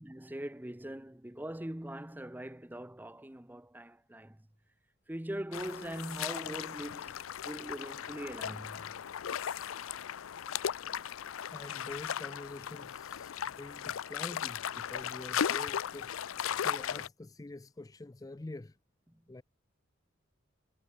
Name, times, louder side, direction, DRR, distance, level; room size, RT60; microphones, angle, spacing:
voice 1, 0.0-4.5 5.1-7.1 7.4-8.9, right 1 dB, 10° right, 0.8 m, -41 dB
sound 1, 5.5-17.1, left 9 dB, 85° left, 0.5 m, -37 dB
voice 2, 11.5-16.1 16.6-18.8 19.3-19.4, left 2 dB, 20° left, 0.4 m, -46 dB
head